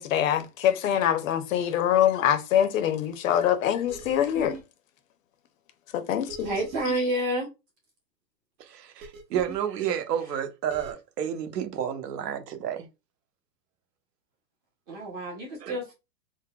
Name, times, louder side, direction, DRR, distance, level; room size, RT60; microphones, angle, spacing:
voice 1, 0.0-4.6 5.9-6.5, left 10 dB, 55° left, 0.6 m, -24 dB
sound 1, 3.9-4.6 6.3-7.0 9.0-9.6 10.7-10.9, right 4 dB, 50° right, 0.9 m, -41 dB
voice 2, 6.4-7.5 14.9-15.9, right 1 dB, 20° right, 0.7 m, -29 dB
voice 3, 8.6-12.9 15.6-15.8, right 9 dB, 75° right, 0.9 m, -31 dB
3.9 x 2.1 x 2.2 m
hypercardioid pair, 155°, 50 cm